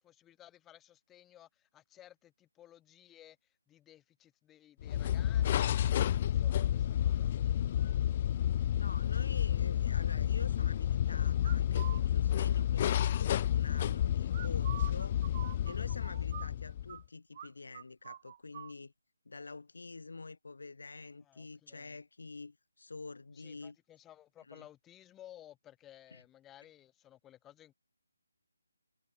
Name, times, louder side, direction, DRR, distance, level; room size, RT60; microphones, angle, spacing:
voice 1, 0.0-7.6 16.3-16.4 21.2-22.0 23.3-27.7, left 12 dB, 10° left, 7.3 m, -58 dB
sound 1, 4.8-17.0, left 11 dB, 30° left, 0.9 m, -30 dB
voice 2, 8.7-15.2 15.6-18.9 19.3-23.8 24.5-24.6 26.1-26.2, left 3 dB, 70° left, 4.0 m, -47 dB
sound 2, 11.4-12.0 14.3-17.0 17.3-17.5 17.7-18.7, right 10 dB, 35° right, 5.6 m, -46 dB
figure-of-eight pair, 155°, 0 cm